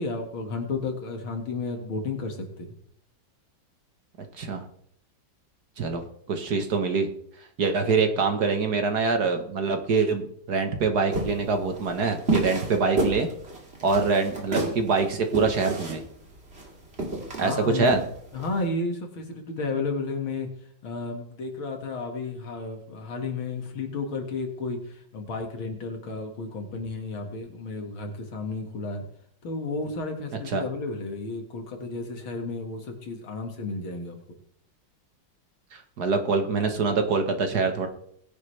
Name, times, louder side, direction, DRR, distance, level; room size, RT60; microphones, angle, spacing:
voice 1, 0.0-2.7 17.4-17.9 18.3-20.5 20.8-24.8 25.1-29.0 29.4-34.2, left 3 dB, 80° left, 4 dB, 2.8 m, -32 dB
voice 2, 5.8-7.1 7.6-13.3 13.8-16.0 17.4-18.0 30.5-30.6 35.7-37.9, right 4 dB, 55° right, 6 dB, 1.8 m, -25 dB
sound 1, 11.1-18.6, right 2 dB, 30° right, 2.6 m, -30 dB
20.0 x 10.5 x 3.4 m, 0.70 s
omnidirectional pair, 2.2 m